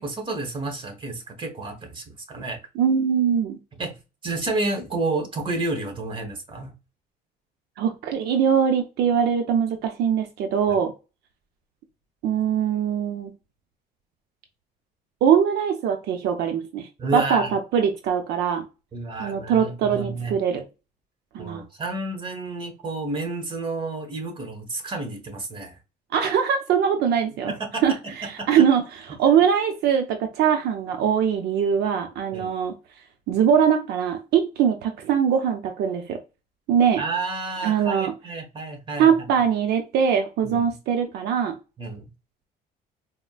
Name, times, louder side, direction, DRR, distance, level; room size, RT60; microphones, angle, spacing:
voice 1, 0.0-2.6 3.8-3.9 4.2-6.7 10.7-10.8 17.0-17.5 18.9-20.3 21.4-25.8 27.5-28.1 28.4-28.5 32.3-32.5 37.0-39.1 40.4-40.6 41.8-42.0, right 2 dB, 30° right, 1.2 m, -30 dB
voice 2, 2.8-3.6 7.8-10.9 12.2-13.3 15.2-18.6 19.2-20.6 21.3-21.6 26.1-27.5 27.8-27.9 28.3-32.7 33.3-36.2 36.7-37.0 37.6-38.1 39.0-41.5, right 7 dB, 75° right, 0.6 m, -22 dB
4.2 x 2.1 x 2.3 m
cardioid pair, 110°, 17 cm